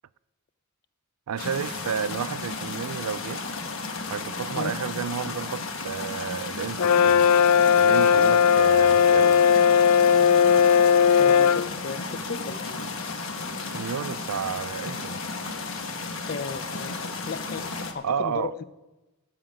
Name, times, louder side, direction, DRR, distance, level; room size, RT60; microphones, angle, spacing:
voice 1, 1.3-3.4 4.1-7.2 7.8-9.4 13.6-15.2 18.0-18.5, right 7 dB, 90° right, 0.4 m, -31 dB
sound 1, 1.4-17.9, left 3 dB, 65° left, 1.2 m, -34 dB
Brass instrument, 6.8-11.7, left 7 dB, 90° left, 0.3 m, -18 dB
voice 2, 11.2-13.0 16.3-18.6, left 5 dB, 45° left, 0.6 m, -35 dB
13.5 x 5.0 x 8.8 m
head